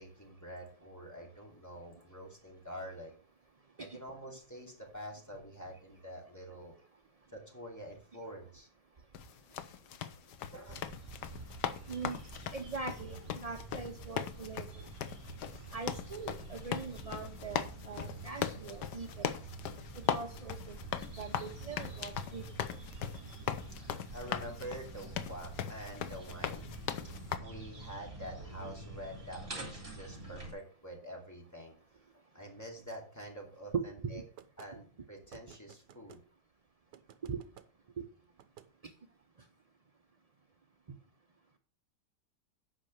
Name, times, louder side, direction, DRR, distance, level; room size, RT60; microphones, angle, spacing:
voice 1, 0.0-3.1 3.8-6.7 7.3-8.7 10.5-10.8 23.7-26.7 27.0-31.8 32.3-34.2 34.6-36.2, equal, 10° left, 0 dB, 2.5 m, -47 dB
sound 1, 9.1-27.4, left 9 dB, 80° left, 1.4 m, -39 dB
sound 2, 10.7-30.5, right 2 dB, 30° right, 3.5 m, -47 dB
voice 2, 12.5-14.7 15.7-19.2 20.0-20.8 21.2-22.4 33.7-33.8 34.1-34.2 37.3-37.4, right 5 dB, 55° right, 5 dB, 0.4 m, -41 dB
sound 3, 34.4-34.7 35.3-36.2 36.9-37.7 38.4-38.7, right 10 dB, 90° right, 1.4 m, -56 dB
8.7 x 5.6 x 6.2 m, 0.41 s
omnidirectional pair, 1.8 m